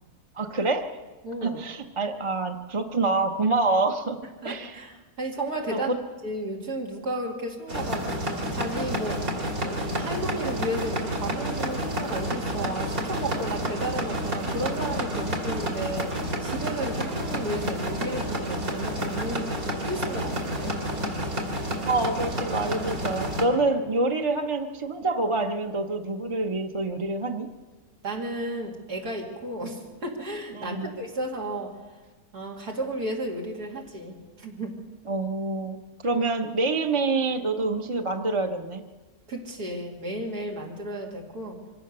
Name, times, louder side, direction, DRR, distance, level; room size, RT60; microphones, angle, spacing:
voice 1, 0.3-0.9 1.4-4.8 5.7-6.0 21.8-27.5 30.5-30.9 35.1-35.8 36.0-38.8, right 3 dB, 25° right, 3 dB, 0.7 m, -26 dB
voice 2, 1.2-1.6 4.4-5.9 6.2-9.2 9.6-19.5 19.8-20.8 28.0-31.8 32.3-34.8 39.3-41.6, right 1 dB, 85° right, 0 dB, 3.3 m, -33 dB
sound 1, 7.7-23.4, equal, 65° right, 3.3 m, -30 dB
24.0 x 16.5 x 6.8 m, 1.3 s
omnidirectional pair, 1.6 m